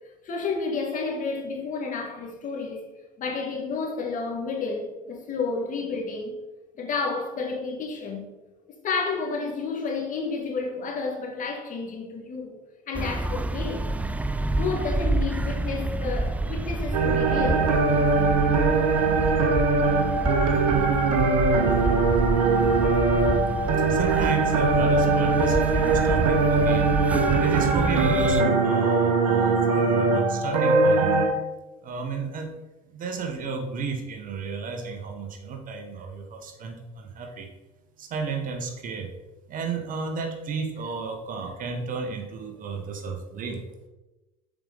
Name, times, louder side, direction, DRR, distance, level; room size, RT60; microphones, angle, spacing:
voice 1, 0.2-2.8 3.2-6.4 6.8-8.3 8.8-12.6 12.9-13.9 14.5-17.7, left 4 dB, 45° left, 1.7 m, -30 dB
sound 1, 12.9-28.4, right 2 dB, 10° right, 0.3 m, -29 dB
sound 2, 16.9-31.3, right 4 dB, 80° right, 0.9 m, -21 dB
voice 2, 23.9-31.5 31.8-32.5 32.9-37.5 38.0-39.2 39.5-43.6, right 5 dB, 45° right, 1.2 m, -33 dB
6.8 x 4.9 x 3.9 m
hypercardioid pair, 70°, 19 cm